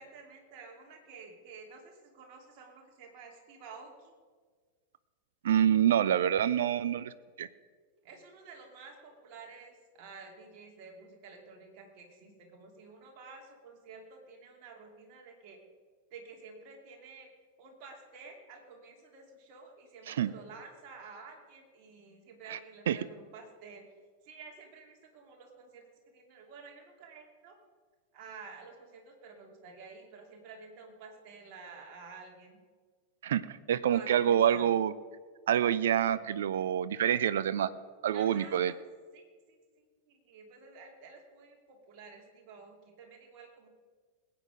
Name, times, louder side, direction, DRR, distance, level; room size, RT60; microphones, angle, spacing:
voice 1, 0.0-4.1 8.0-15.6 16.1-17.3 17.6-23.8 24.2-25.9 26.1-27.6 28.1-32.6 33.9-34.7 38.1-38.8 39.1-43.7, right 4 dB, 40° right, 1 dB, 2.7 m, -51 dB
voice 2, 5.4-7.5 20.1-20.3 22.5-22.6 22.9-23.0 33.2-33.4 33.7-34.9 35.5-37.7 38.0-38.7, right 10 dB, 60° right, 16 dB, 0.5 m, -27 dB
20.0 x 8.7 x 5.0 m, 1.5 s
figure-of-eight pair, 90°, 0 cm